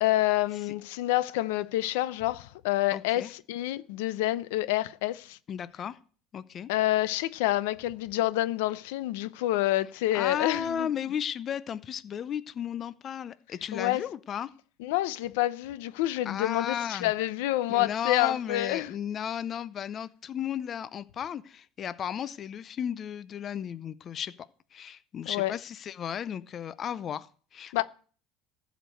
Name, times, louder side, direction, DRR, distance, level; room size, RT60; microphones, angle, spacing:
voice 1, 0.0-5.4 6.7-10.9 13.7-14.0 14.8-18.9 25.3-25.5 27.7-27.8, left 16 dB, 90° left, 0.7 m, -28 dB
voice 2, 2.9-3.3 5.5-6.0 6.3-6.7 10.1-14.5 16.3-17.1 17.7-24.3 24.7-27.8, left 8 dB, 35° left, 0.6 m, -34 dB
14.5 x 5.1 x 7.8 m
cardioid pair, 140°, 0 cm